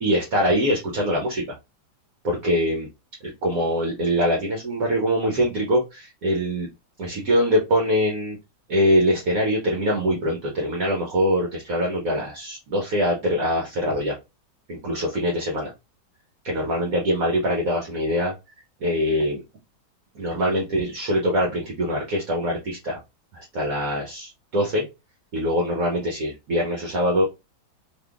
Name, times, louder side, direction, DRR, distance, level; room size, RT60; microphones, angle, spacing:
voice 1, 0.0-1.4 2.2-2.9 3.2-6.7 7.0-8.4 8.7-14.2 14.7-15.7 16.4-18.3 18.8-19.4 20.1-23.0 23.3-24.8 25.3-27.2, equal, 60° right, 0 dB, 1.2 m, -23 dB
3.5 x 3.0 x 2.4 m, 0.24 s
omnidirectional pair, 1.9 m